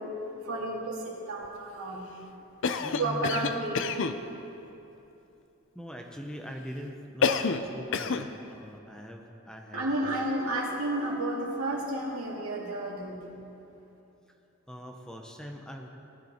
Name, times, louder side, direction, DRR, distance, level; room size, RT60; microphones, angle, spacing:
voice 1, 0.0-2.0 3.0-4.2 9.7-13.4, right 1 dB, 80° right, -2 dB, 2.2 m, -32 dB
Cough, 2.6-4.2 7.2-7.7 7.9-8.3, left 5 dB, 60° left, 0.5 m, -28 dB
voice 2, 2.8-3.5 5.7-10.2 14.7-15.9, equal, 5° left, 2 dB, 0.7 m, -41 dB
16.5 x 10.5 x 4.3 m, 2.8 s
head